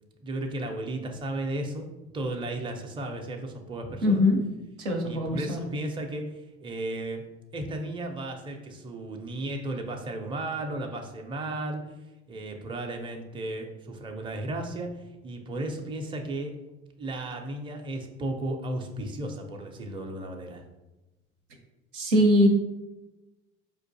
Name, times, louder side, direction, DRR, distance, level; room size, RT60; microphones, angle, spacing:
voice 1, 0.2-1.9 2.1-4.3 5.0-7.2 7.5-11.8 12.3-14.9 15.2-16.5 17.0-20.6, right 1 dB, 15° right, 3 dB, 0.5 m, -34 dB
voice 2, 4.0-4.4 4.8-5.6 21.9-22.5, left 1 dB, 85° right, 2 dB, 0.7 m, -22 dB
4.4 x 2.4 x 2.6 m, 1.0 s
hypercardioid pair, 65°, 34 cm